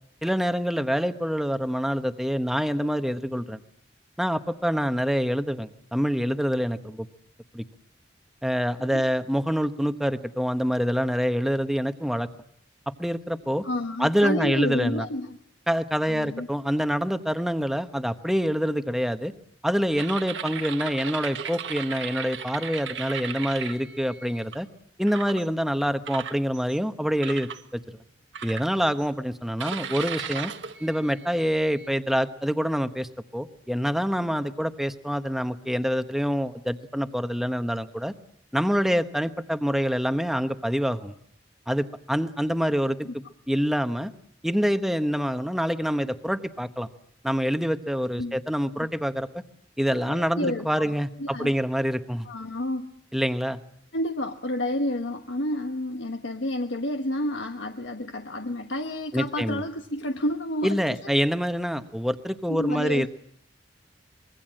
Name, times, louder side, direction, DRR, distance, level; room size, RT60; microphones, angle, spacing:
voice 1, 0.2-3.6 4.2-7.1 7.5-7.6 8.4-12.3 13.0-13.6 14.0-15.1 15.7-19.3 19.6-24.7 25.0-28.0 28.4-30.5 30.8-38.1 38.5-41.1 41.7-43.0 43.5-44.1 44.4-46.9 47.2-49.3 49.8-52.3 53.1-53.6 59.1-59.6 60.6-63.1, equal, ahead, 9 dB, 1.0 m, -26 dB
voice 2, 13.6-15.4 16.1-16.5 43.0-43.1 48.2-48.4 48.8-48.9 49.9-51.5 52.3-53.0 53.9-61.1 62.5-63.1, left 1 dB, 80° left, 5 dB, 1.3 m, -30 dB
sound 1, 20.0-24.6 25.1-25.5 26.1-26.8 27.2-27.6 28.3-29.1 29.6-31.9, right 7 dB, 80° right, 1.5 m, -36 dB
25.0 x 22.0 x 7.6 m, 0.68 s
head